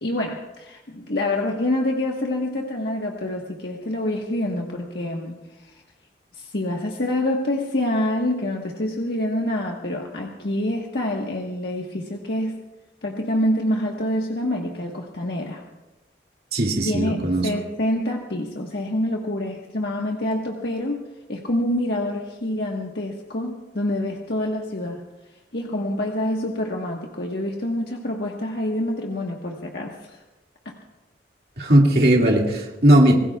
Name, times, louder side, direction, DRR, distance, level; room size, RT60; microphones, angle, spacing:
voice 1, 0.0-5.8 6.4-12.6 13.0-15.6 16.8-21.0 21.3-25.0 25.5-30.2 30.6-30.7, left 1 dB, 65° left, 0 dB, 1.4 m, -26 dB
voice 2, 16.5-17.5 31.6-33.1, right 1 dB, 55° right, -1 dB, 2.2 m, -17 dB
26.5 x 19.5 x 2.4 m, 1.1 s
head